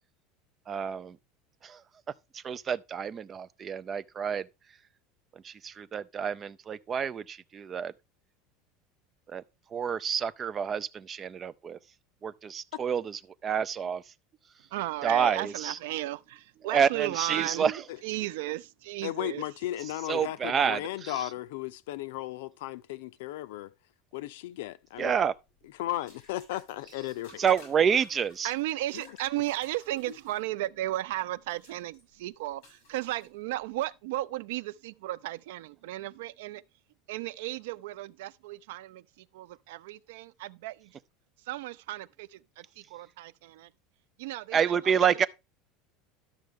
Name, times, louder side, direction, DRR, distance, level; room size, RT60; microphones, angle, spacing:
voice 1, 0.7-1.2 1.6-1.8 2.4-4.4 5.4-7.9 9.3-9.4 9.7-11.8 12.2-14.0 15.0-15.8 16.7-17.8 20.1-20.8 25.0-25.3 27.4-28.5 44.5-45.3, right 7 dB, 20° right, 0.4 m, -28 dB
voice 2, 14.7-19.4 28.4-36.6 37.1-40.9 41.5-43.7 44.2-45.3, right 16 dB, 80° right, 0.4 m, -35 dB
voice 3, 19.0-23.7 24.1-25.2 25.7-27.5 28.9-29.2 30.1-30.2, left 15 dB, 80° left, 0.6 m, -35 dB
sound 1, 24.9-33.8, left 3 dB, 55° left, 6.6 m, -57 dB
12.0 x 6.4 x 3.6 m
cardioid pair, 175°, 0 cm